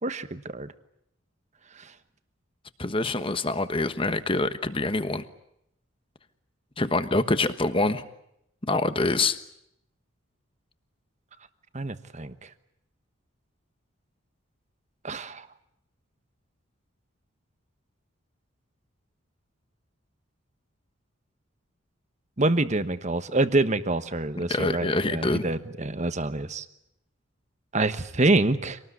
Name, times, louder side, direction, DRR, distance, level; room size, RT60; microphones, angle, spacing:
voice 1, 0.0-0.7 1.8-1.9 11.7-12.3 15.0-15.5 22.4-26.6 27.7-28.8, right 2 dB, 35° right, 11 dB, 1.2 m, -26 dB
voice 2, 2.8-5.2 6.8-8.0 8.7-9.4 24.5-25.5, left 2 dB, 25° left, 11 dB, 1.3 m, -25 dB
26.0 x 19.0 x 9.7 m, 0.78 s
head